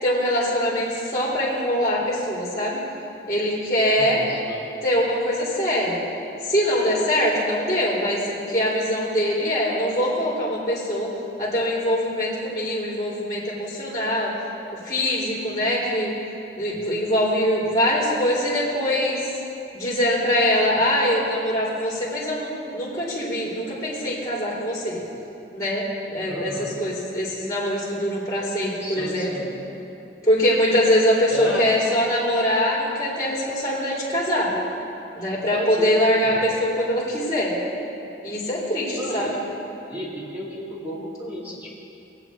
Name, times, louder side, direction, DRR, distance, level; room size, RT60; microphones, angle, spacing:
voice 1, 0.0-2.8 3.3-4.2 4.8-6.0 6.4-8.2 8.5-11.1 11.4-14.3 14.8-16.1 16.6-19.3 19.7-25.0 25.5-29.3 30.2-34.5 35.1-37.5 38.2-39.4, equal, 20° left, -8 dB, 3.1 m, -23 dB
voice 2, 4.0-4.7 26.3-26.7 28.8-29.6 31.3-31.6 35.5-36.6 38.9-39.3 39.9-41.8, equal, 10° right, -7 dB, 2.4 m, -34 dB
22.5 x 8.2 x 3.1 m, 2.8 s
head